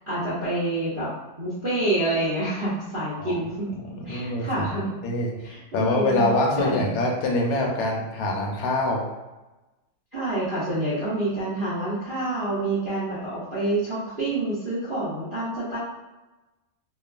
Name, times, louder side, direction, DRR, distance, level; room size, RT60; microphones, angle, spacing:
voice 1, 0.1-1.1 1.4-3.7 4.0-5.0 5.4-6.3 6.6-7.0 10.1-15.8, right 2 dB, 60° right, -12 dB, 0.5 m, -27 dB
voice 2, 4.1-9.0, left 2 dB, 70° left, -1 dB, 1.1 m, -25 dB
3.0 x 2.2 x 2.3 m, 1.1 s
omnidirectional pair, 1.9 m